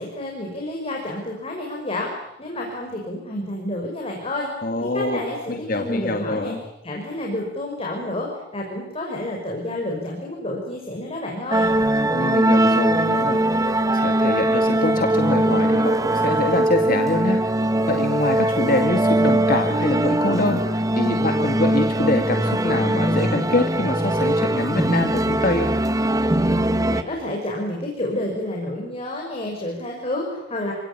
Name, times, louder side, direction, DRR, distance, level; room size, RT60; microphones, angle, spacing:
voice 1, 0.0-4.5 4.9-6.5 6.8-8.3 8.5-11.7 26.9-30.7, left 1 dB, 30° left, 0 dB, 5.7 m, -29 dB
voice 2, 4.6-5.2 5.5-6.6 12.1-17.4 17.9-25.7, left 2 dB, 50° left, 5 dB, 2.1 m, -25 dB
sound 1, 11.5-27.0, right 1 dB, 20° right, 1.3 m, -21 dB
28.5 x 18.5 x 9.9 m, 0.90 s
head